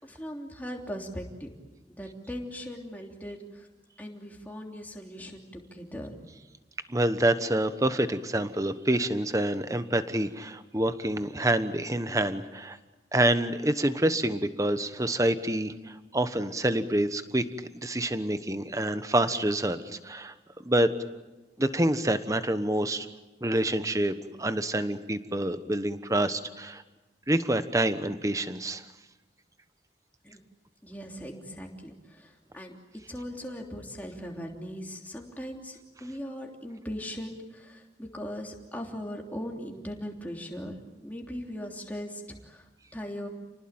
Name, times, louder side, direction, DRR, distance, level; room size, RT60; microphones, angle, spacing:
voice 1, 0.0-1.5 1.9-3.7 4.0-6.1 30.2-30.4 30.8-32.7 33.1-40.7 41.0-42.7 42.9-43.3, equal, 10° left, 0 dB, 3.2 m, -39 dB
voice 2, 6.9-12.8 13.1-17.4 17.7-20.3 20.6-20.9 21.6-23.1 23.4-24.1 24.4-26.8 27.3-28.8, right 1 dB, 20° right, 11 dB, 1.2 m, -27 dB
29.5 x 19.5 x 8.9 m, 1.1 s
head